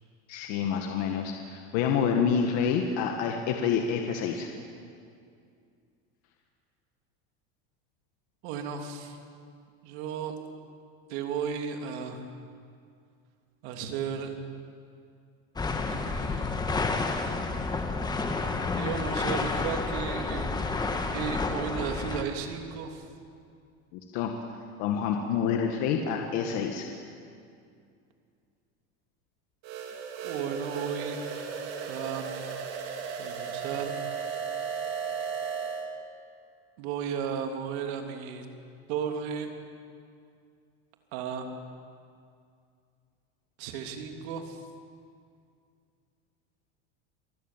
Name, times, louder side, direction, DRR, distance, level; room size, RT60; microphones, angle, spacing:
voice 1, 0.3-4.5 23.9-24.3 24.8-26.9, left 7 dB, 55° left, 3 dB, 1.9 m, -28 dB
voice 2, 8.4-9.2 9.8-10.3 11.1-12.2 13.6-14.3 15.9-16.5 18.7-20.6 21.1-23.0 30.2-31.3 31.9-32.5 33.2-34.0 36.8-38.5 38.9-39.5 41.1-41.5 43.6-44.6, right 7 dB, 70° right, 4 dB, 3.1 m, -34 dB
sound 1, 15.6-22.2, left 3 dB, 10° left, 1.5 m, -30 dB
sound 2, 29.6-35.9, right 6 dB, 50° right, 3.5 m, -35 dB
26.5 x 20.0 x 7.5 m, 2.3 s
cardioid pair, 155°, 33 cm